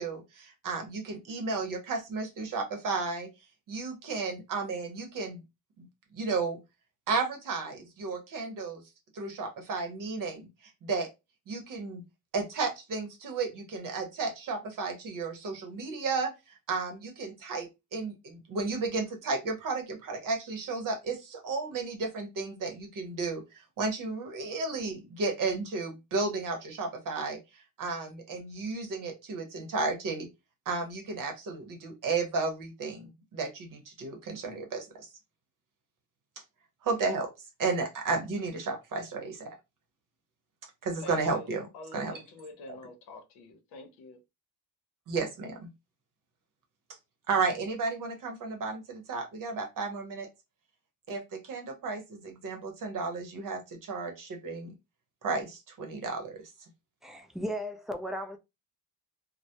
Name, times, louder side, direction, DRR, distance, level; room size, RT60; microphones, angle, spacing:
voice 1, 0.0-3.3 3.7-5.4 5.8-5.9 6.1-6.6 7.1-8.8 9.1-11.1 11.5-12.0 12.3-23.4 23.8-27.4 27.8-30.3 30.7-35.1 36.8-37.3 37.6-39.6 40.8-41.7 41.9-42.2 45.1-45.7 47.3-50.3 51.1-54.7 55.2-56.4, right 4 dB, 55° right, 0.8 m, -33 dB
voice 2, 41.0-44.2, left 2 dB, 90° left, 0.8 m, -46 dB
voice 3, 57.0-58.4, equal, ahead, 0.3 m, -35 dB
2.1 x 2.1 x 2.8 m
cardioid pair, 105°, 38 cm